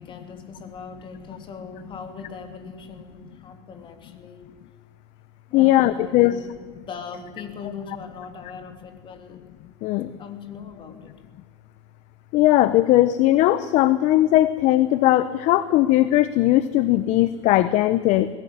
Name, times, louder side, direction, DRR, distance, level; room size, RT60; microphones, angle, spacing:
voice 1, 0.0-4.4 5.5-6.5 6.9-9.5 9.8-11.1, left 5 dB, 35° left, 6 dB, 3.3 m, -40 dB
voice 2, 5.5-6.3 9.8-10.1 12.3-18.3, left 15 dB, 50° left, 14 dB, 0.9 m, -18 dB
20.5 x 16.5 x 9.7 m, 1.5 s
supercardioid pair, 115°, 15 cm